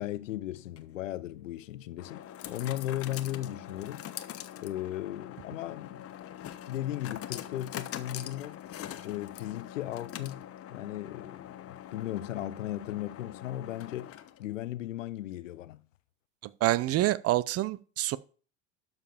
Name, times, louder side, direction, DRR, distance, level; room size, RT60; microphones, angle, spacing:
voice 1, 0.0-2.2 2.5-4.3 4.6-6.1 6.7-8.6 9.0-10.4 10.7-14.1 14.4-15.8, left 13 dB, 85° left, 0.8 m, -36 dB
sound 1, 0.6-14.5, left 11 dB, 40° left, 1.1 m, -44 dB
voice 2, 16.6-18.2, right 15 dB, 40° right, 0.7 m, -27 dB
12.0 x 5.0 x 5.1 m
hypercardioid pair, 80°, 37 cm